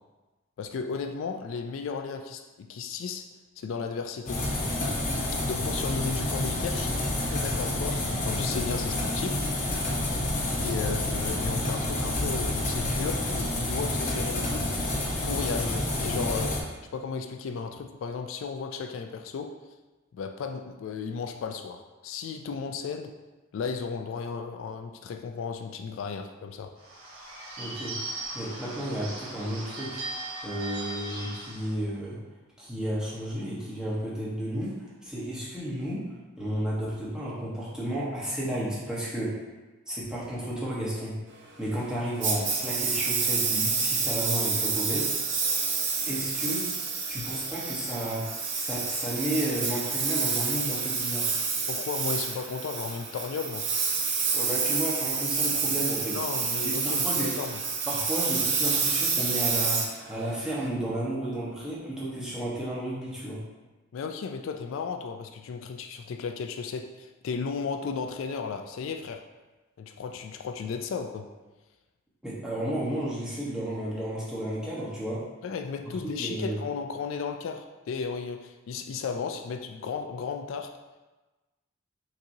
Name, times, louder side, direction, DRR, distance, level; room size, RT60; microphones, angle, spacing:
voice 1, 0.6-3.3 3.6-4.5 5.4-9.4 10.6-14.9 15.2-16.7 16.9-19.5 20.1-23.1 23.5-26.7 47.2-47.3 51.7-53.7 56.1-57.6 63.9-69.2 69.8-71.3 75.4-80.7, left 5 dB, 70° left, 5 dB, 0.3 m, -34 dB
sound 1, 4.3-16.6, left 1 dB, 40° left, 0.7 m, -29 dB
Bird / Bell, 26.8-31.7, right 2 dB, 85° right, 0.9 m, -38 dB
voice 2, 27.6-27.9 28.3-30.0 30.4-32.2 32.6-36.0 36.4-39.3 39.9-41.1 41.6-45.1 46.1-46.6 47.1-51.3 54.3-56.2 56.6-57.3 57.9-59.8 60.1-63.4 72.2-75.2 75.8-75.9 76.2-76.6, equal, 5° right, -8 dB, 1.0 m, -32 dB
Engine, 42.2-60.7, right 5 dB, 60° right, 0.7 m, -28 dB
5.9 x 2.9 x 2.7 m, 1.2 s
head